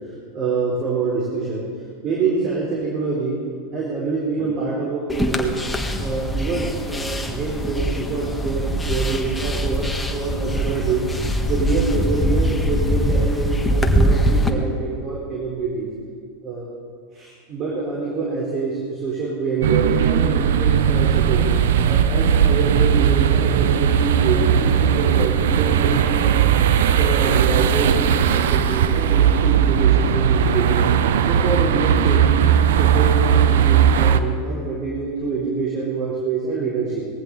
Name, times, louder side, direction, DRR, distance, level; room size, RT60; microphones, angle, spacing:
voice 1, 0.3-1.7 2.0-3.4 3.7-5.6 6.0-11.1 11.5-15.9 16.4-16.7 17.1-21.5 21.8-26.4 27.0-30.8 31.3-32.3 32.8-37.1, right 4 dB, 45° right, -4 dB, 3.9 m, -25 dB
sound 1, 5.1-14.5, equal, 5° left, 1.5 m, -22 dB
sound 2, 19.6-34.2, right 8 dB, 75° right, 0.7 m, -17 dB
19.0 x 14.5 x 4.1 m, 2.1 s
hypercardioid pair, 100°, 0 cm